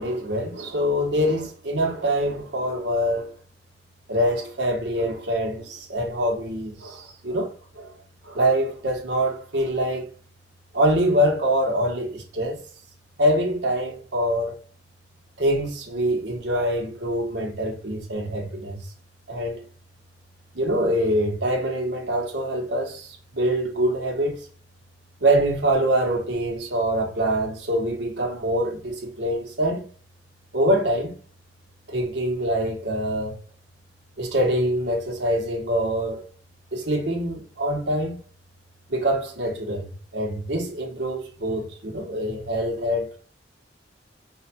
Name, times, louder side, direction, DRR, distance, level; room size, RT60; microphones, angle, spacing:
voice 1, 0.0-3.3 4.1-7.9 8.2-10.1 10.7-12.6 13.2-14.6 15.4-18.9 19.3-19.7 20.5-24.5 25.2-29.9 30.5-31.2 31.9-33.4 34.2-36.2 36.7-38.2 38.9-43.2, equal, 80° right, 1.3 m, -24 dB
4.8 x 2.4 x 2.7 m
head